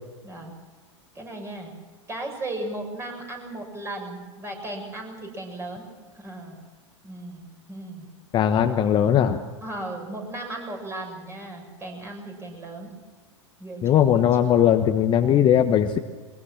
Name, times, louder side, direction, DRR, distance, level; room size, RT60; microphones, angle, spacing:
voice 1, 0.2-0.5 1.1-1.7 2.1-5.9 6.1-6.6 7.0-8.1 9.6-12.9 13.6-14.5, right 2 dB, 15° right, 2 dB, 6.9 m, -36 dB
voice 2, 8.3-9.4 13.8-16.0, left 9 dB, 30° left, 7 dB, 1.2 m, -19 dB
22.0 x 21.0 x 7.4 m, 1.3 s
hypercardioid pair, 100°, 16 cm